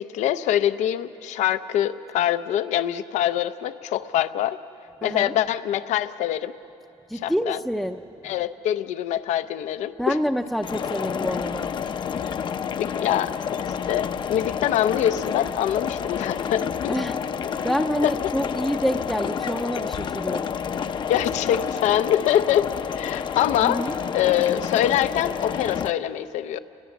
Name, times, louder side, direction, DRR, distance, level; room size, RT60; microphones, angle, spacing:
voice 1, 0.0-4.6 5.0-6.5 7.2-7.6 8.2-10.2 12.7-13.3 13.9-16.9 18.0-18.1 20.9-22.7 22.9-23.8 24.1-26.6, left 11 dB, 80° left, 12 dB, 0.6 m, -24 dB
voice 2, 5.0-5.3 7.1-8.0 10.0-11.7 16.9-17.2 17.6-20.5 23.6-23.9, equal, ahead, 3 dB, 0.5 m, -27 dB
sound 1, 10.6-25.9, left 7 dB, 40° left, 0.6 m, -29 dB
29.0 x 21.5 x 7.2 m, 2.8 s
cardioid pair, 140°, 12 cm